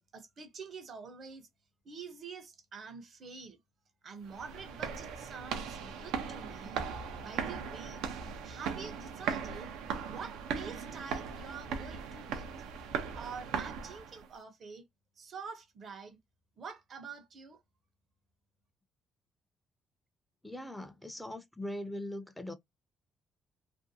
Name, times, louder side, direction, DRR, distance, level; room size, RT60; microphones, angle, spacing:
voice 1, 0.0-1.5 1.8-3.6 4.0-6.8 7.2-8.0 8.4-9.7 10.1-12.5 13.1-14.8 15.2-16.2 16.6-17.6, right 5 dB, 55° right, 0.8 m, -47 dB
sound 1, 4.2-14.3, right 6 dB, 80° right, 0.5 m, -38 dB
voice 2, 20.4-22.5, left 1 dB, 10° left, 0.6 m, -40 dB
2.5 x 2.2 x 2.7 m
supercardioid pair, 60°, 0 cm